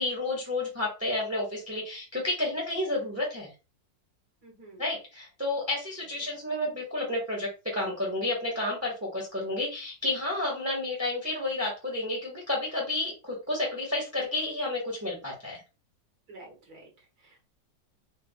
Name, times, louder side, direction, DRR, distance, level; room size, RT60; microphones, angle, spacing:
voice 1, 0.0-3.5 4.8-15.6, left 2 dB, 10° right, -3 dB, 0.9 m, -31 dB
voice 2, 4.4-4.9 6.2-6.3 16.3-17.4, right 2 dB, 60° right, 0 dB, 1.8 m, -51 dB
4.5 x 2.3 x 2.3 m, 0.29 s
omnidirectional pair, 2.0 m